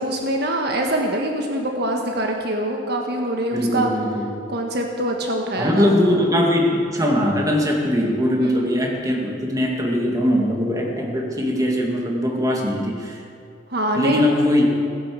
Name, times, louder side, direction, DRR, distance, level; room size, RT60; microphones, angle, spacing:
voice 1, 0.0-3.9 4.5-6.0 8.4-8.7 13.7-14.3, right 1 dB, 60° right, 2 dB, 1.5 m, -24 dB
voice 2, 3.5-4.3 5.6-13.2 14.0-14.7, left 1 dB, 20° right, 0 dB, 2.1 m, -21 dB
17.0 x 9.9 x 7.6 m, 2.5 s
head